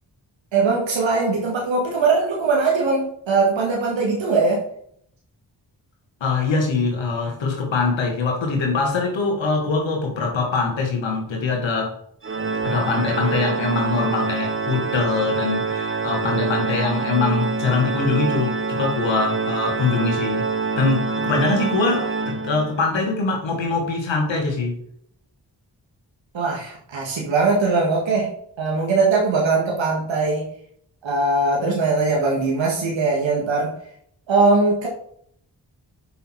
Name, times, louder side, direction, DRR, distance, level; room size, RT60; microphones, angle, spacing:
voice 1, 0.5-4.7 26.3-28.3 28.6-30.5 31.0-33.7 34.3-34.9, right 3 dB, 90° right, -1 dB, 1.8 m, -20 dB
voice 2, 6.2-12.0 12.6-20.5 20.7-24.8, left 3 dB, 90° left, 0 dB, 2.2 m, -23 dB
Organ, 12.2-22.9, right 4 dB, 30° right, 0.9 m, -26 dB
6.7 x 5.7 x 4.6 m, 0.65 s
cardioid pair, 40°, 44 cm